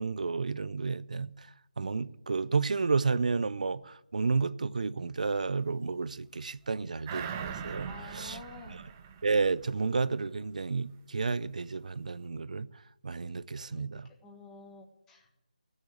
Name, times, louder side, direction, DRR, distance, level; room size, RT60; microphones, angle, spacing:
voice 1, 0.0-8.4 8.7-8.8 9.2-12.7 13.0-14.1, right 4 dB, 60° right, 0.6 m, -31 dB
sound 1, 7.1-10.0 10.3-10.4, right 7 dB, 20° right, 0.7 m, -41 dB
voice 2, 7.9-8.8 13.7-13.9 14.2-15.4, left 3 dB, 10° left, 1.5 m, -49 dB
15.5 x 6.6 x 8.5 m
figure-of-eight pair, 165°, 5 cm